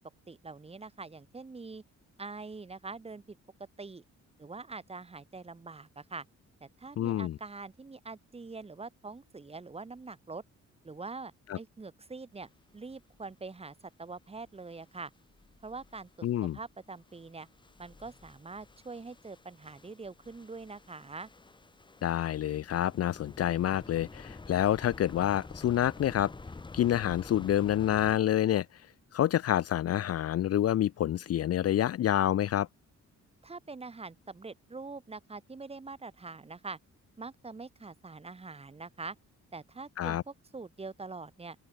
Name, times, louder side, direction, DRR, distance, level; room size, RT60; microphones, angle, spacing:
voice 1, 0.3-1.8 2.2-3.4 3.8-4.0 4.4-6.2 6.6-10.4 10.8-15.1 15.6-17.5 17.8-21.3 33.4-36.8 37.2-39.2 39.5-41.6, right 3 dB, 20° right, 2.7 m, -44 dB
voice 2, 7.0-7.4 11.5-11.6 16.2-16.6 22.0-26.3 26.7-28.7 29.1-32.7 40.0-40.2, left 11 dB, 55° left, 0.6 m, -28 dB
sound 1, 12.7-13.3 14.4-14.9 15.1-16.5 16.8-28.2, left 3 dB, 15° left, 1.4 m, -49 dB
open air
wide cardioid pair, 175°, 30 cm